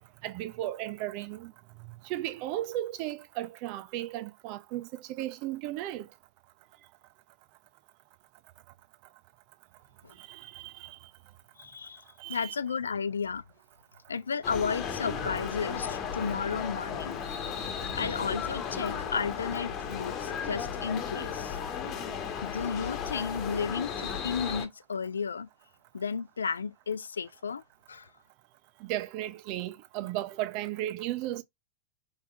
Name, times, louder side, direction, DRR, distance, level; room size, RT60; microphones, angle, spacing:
voice 1, 0.2-1.5 2.0-6.1 10.2-11.0 12.2-12.5 28.8-31.4, right 14 dB, 45° right, 0.6 m, -35 dB
voice 2, 11.6-12.0 12.3-13.4 14.1-17.2 18.0-21.6 22.4-25.5 25.9-27.6 27.9-28.1, left 6 dB, 70° left, 0.4 m, -33 dB
sound 1, 14.4-24.7, left 7 dB, 35° left, 1.2 m, -35 dB
5.5 x 3.5 x 2.4 m
figure-of-eight pair, 90°, 0 cm